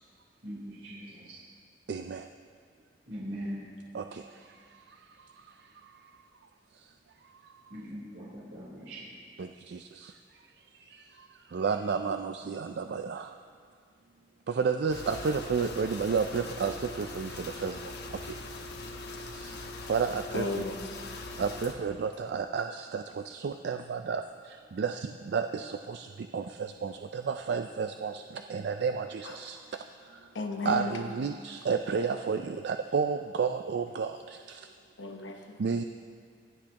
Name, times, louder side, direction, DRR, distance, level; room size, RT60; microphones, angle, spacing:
voice 1, 0.4-1.4 3.1-3.6 7.7-9.1, equal, 85° right, -8 dB, 3.5 m, -40 dB
voice 2, 1.9-2.3 3.9-4.2 9.4-10.1 11.5-13.3 14.5-17.9 18.2-18.4 19.4-19.6 19.9-20.5 21.4-24.2 24.5-26.1 26.3-29.6 30.6-34.6 35.6-35.8, right 5 dB, 60° right, 7 dB, 0.4 m, -31 dB
sound 1, 14.9-21.7, left 2 dB, 60° left, 1.0 m, -41 dB
voice 3, 20.3-21.1 29.4-29.5 30.3-30.9 35.0-35.6, left 2 dB, 85° left, 4 dB, 1.1 m, -34 dB
23.5 x 8.4 x 2.9 m, 2.2 s
head